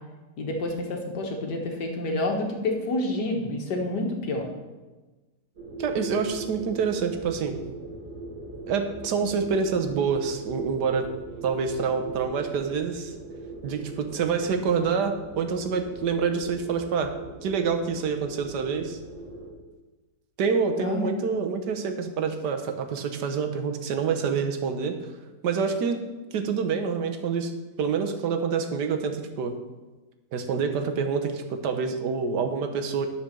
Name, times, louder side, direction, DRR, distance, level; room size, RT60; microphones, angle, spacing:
voice 1, 0.4-4.5 20.8-21.1, left 2 dB, 80° left, 2 dB, 2.0 m, -28 dB
sound 1, 5.6-19.5, right 2 dB, 50° right, 2.2 m, -40 dB
voice 2, 5.8-7.6 8.7-11.1 11.4-13.1 13.6-17.1 17.4-19.0 20.4-25.0 25.4-26.0 26.3-27.5 27.8-29.5 30.3-33.1, right 5 dB, 80° right, 6 dB, 1.5 m, -27 dB
10.5 x 5.0 x 6.6 m, 1.2 s
omnidirectional pair, 1.8 m